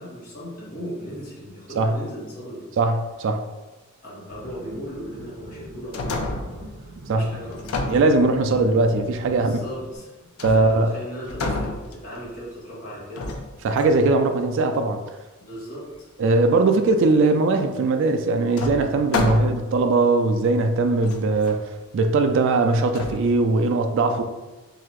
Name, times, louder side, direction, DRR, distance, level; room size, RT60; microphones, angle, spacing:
voice 1, 0.0-2.7 4.0-6.7 7.1-7.9 9.2-13.3 15.4-16.1, equal, 40° left, -8 dB, 1.4 m, -37 dB
voice 2, 2.8-3.4 7.1-7.3 7.9-9.5 10.4-10.9 13.6-15.0 16.2-21.6 21.9-24.2, right 3 dB, 60° right, 6 dB, 0.3 m, -20 dB
sound 1, 4.3-10.0, right 1 dB, 80° right, 1.5 m, -43 dB
sound 2, 5.6-6.7 7.5-8.6 10.4-10.9 11.2-12.3 13.2-14.1 17.6-17.7 18.6-19.8 20.4-20.5 21.0-21.6 22.9-23.2, left 3 dB, 75° left, 0.5 m, -30 dB
3.8 x 2.7 x 3.0 m, 1.1 s
head